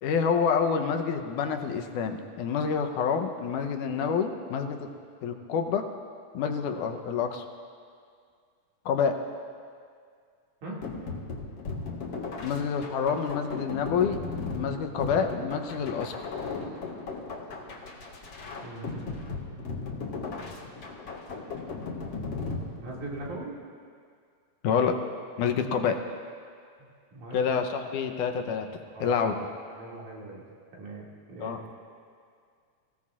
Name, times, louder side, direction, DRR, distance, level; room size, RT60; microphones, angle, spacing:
voice 1, 0.0-4.9 5.2-5.9 6.3-7.5 8.9-9.2 12.4-14.2 14.5-16.1 24.6-24.9 25.4-26.0 27.3-28.7 29.0-29.4 31.4-31.6, left 6 dB, 85° left, 5 dB, 2.4 m, -27 dB
sound 1, 10.8-23.4, left 4 dB, 50° left, 2.5 m, -37 dB
voice 2, 18.6-20.2 22.5-23.6 26.8-27.4 28.9-29.2 29.7-30.4 30.7-31.6, right 2 dB, 70° right, -4 dB, 3.8 m, -41 dB
25.5 x 16.5 x 2.5 m, 2.2 s
omnidirectional pair, 3.6 m